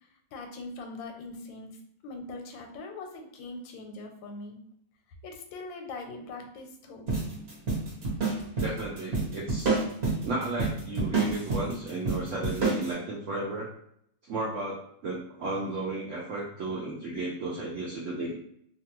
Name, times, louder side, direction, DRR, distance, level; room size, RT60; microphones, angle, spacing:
voice 1, 0.3-1.7 2.0-4.6 5.2-7.1, left 3 dB, 85° left, 4 dB, 1.3 m, -41 dB
sound 1, 7.1-12.9, right 3 dB, 45° right, 0.9 m, -29 dB
voice 2, 8.6-9.7 10.2-13.7 14.3-18.3, right 2 dB, 85° right, -4 dB, 0.6 m, -34 dB
2.9 x 2.3 x 2.9 m, 0.70 s
omnidirectional pair, 2.0 m